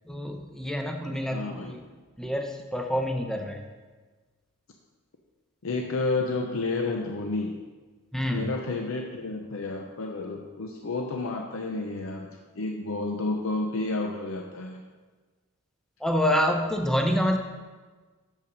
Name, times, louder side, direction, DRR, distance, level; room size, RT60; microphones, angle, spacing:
voice 1, 0.1-1.8 2.2-3.7 8.1-8.5 16.0-17.4, equal, ahead, 3 dB, 0.7 m, -27 dB
voice 2, 1.3-1.7 5.6-7.6 8.3-12.3 12.6-14.8, left 3 dB, 65° left, 2 dB, 0.7 m, -30 dB
6.8 x 5.7 x 6.1 m, 1.4 s
head